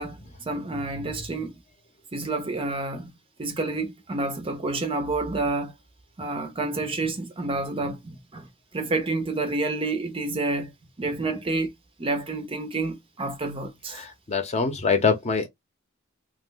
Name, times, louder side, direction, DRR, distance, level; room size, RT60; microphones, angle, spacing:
voice 1, 0.0-1.6 2.1-3.1 3.4-5.7 6.2-8.5 8.7-11.7 12.0-14.1, right 2 dB, 25° right, 0.6 m, -29 dB
voice 2, 14.0-15.5, left 5 dB, 35° left, 0.8 m, -24 dB
2.9 x 2.1 x 3.8 m
head